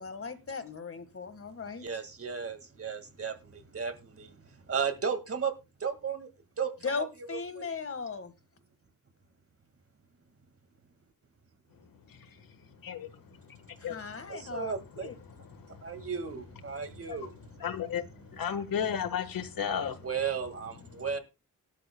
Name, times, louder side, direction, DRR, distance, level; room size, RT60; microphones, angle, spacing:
voice 1, 0.0-1.9 6.8-8.3 13.8-15.2, left 5 dB, 40° left, 1.7 m, -38 dB
voice 2, 1.8-4.4 4.7-5.5 5.8-6.3 6.6-6.7 7.0-7.1 7.3-7.7 14.3-15.1 15.8-17.3 19.7-21.2, right 6 dB, 45° right, 1.9 m, -34 dB
voice 3, 17.6-18.0 18.3-20.0, left 8 dB, 90° left, 1.5 m, -32 dB
18.5 x 12.0 x 2.2 m
wide cardioid pair, 105°, 33 cm